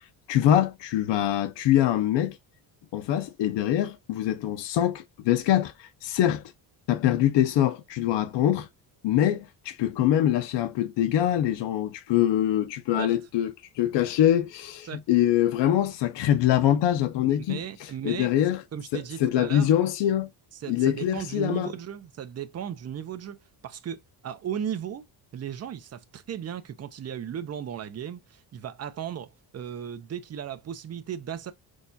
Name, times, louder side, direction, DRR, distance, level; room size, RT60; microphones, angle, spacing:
voice 1, 0.3-2.4 2.9-6.4 6.9-8.7 9.0-18.6 18.9-20.3 20.7-21.7, left 11 dB, 70° left, 0.7 m, -24 dB
voice 2, 17.3-18.3 18.7-19.7 20.6-23.4 23.6-25.0 25.3-31.5, right 9 dB, 35° right, 0.5 m, -36 dB
6.3 x 2.3 x 2.6 m
cardioid pair, 160°, 44 cm